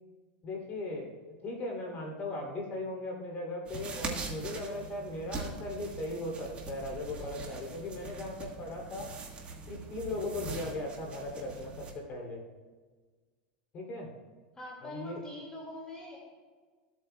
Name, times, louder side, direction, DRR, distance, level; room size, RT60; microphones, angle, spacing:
voice 1, 0.4-1.2 1.4-9.1 9.7-12.4 13.7-14.1 14.8-15.2, left 2 dB, 35° left, 0 dB, 2.9 m, -38 dB
sound 1, 3.7-11.9, right 3 dB, 25° right, 1.6 m, -42 dB
voice 2, 14.5-16.2, left 1 dB, 15° left, -4 dB, 2.1 m, -44 dB
15.0 x 8.2 x 2.3 m, 1.4 s
supercardioid pair, 130°, 5 cm